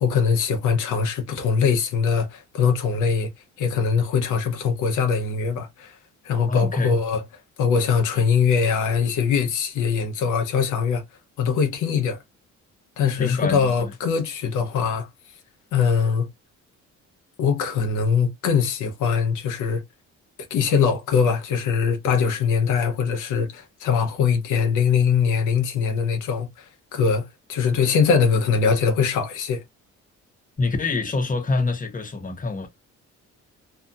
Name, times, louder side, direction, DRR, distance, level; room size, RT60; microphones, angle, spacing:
voice 1, 0.0-3.3 3.6-6.0 6.2-7.2 7.6-11.0 11.4-12.2 13.0-15.1 15.7-16.3 17.4-19.8 20.5-26.6 26.9-29.6, left 6 dB, 85° left, 0.8 m, -22 dB
voice 2, 6.5-6.9 13.2-13.9 30.6-32.7, left 3 dB, 25° left, 0.9 m, -25 dB
2.7 x 2.4 x 2.3 m
cardioid pair, 90°, 30 cm